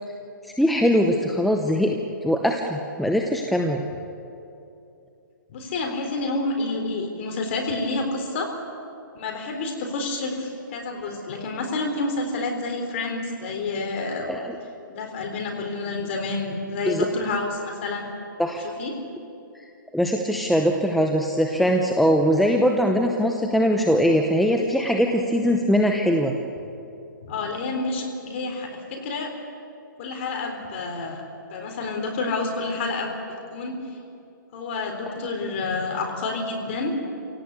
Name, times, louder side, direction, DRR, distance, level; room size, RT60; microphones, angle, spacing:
voice 1, 0.4-2.0 2.2-3.8 14.3-14.6 16.9-17.1 18.4-18.6 19.5-19.7 19.9-26.3 35.1-35.2, equal, ahead, 2 dB, 0.8 m, -21 dB
voice 2, 5.5-8.5 9.1-14.3 14.9-18.1 18.6-18.9 27.2-29.3 30.0-31.2 31.5-33.1 33.5-33.8 34.5-36.9, left 3 dB, 35° left, 3 dB, 3.9 m, -29 dB
27.0 x 17.5 x 8.3 m, 2.7 s
hypercardioid pair, 160°, 11 cm